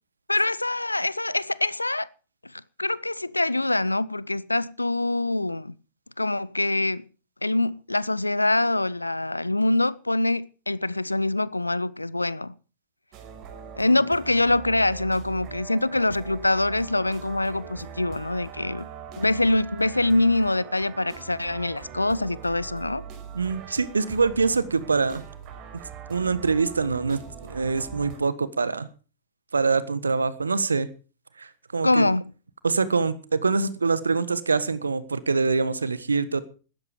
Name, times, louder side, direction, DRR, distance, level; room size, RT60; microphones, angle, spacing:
voice 1, 0.3-2.1 2.4-5.7 6.2-7.1 7.4-12.5 13.7-18.9 19.2-23.0 31.8-32.3, left 2 dB, 90° left, 0.6 m, -24 dB
sound 1, 13.1-28.2, right 7 dB, 40° right, 5.8 m, -42 dB
voice 2, 23.3-25.2 26.1-28.9 29.5-30.9 31.4-32.0 32.6-36.5, right 4 dB, 80° right, 1.3 m, -24 dB
16.5 x 13.0 x 5.0 m
figure-of-eight pair, 95°, 0 cm